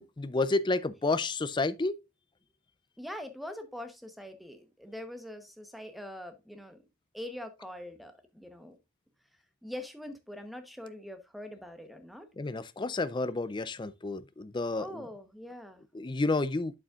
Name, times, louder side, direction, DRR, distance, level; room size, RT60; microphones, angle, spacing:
voice 1, 0.0-2.0 12.4-15.1 15.9-16.7, left 3 dB, 20° left, 0.4 m, -30 dB
voice 2, 3.0-6.8 7.1-8.8 9.6-12.3 14.7-15.8, left 1 dB, ahead, 0.9 m, -43 dB
8.5 x 7.0 x 2.4 m
head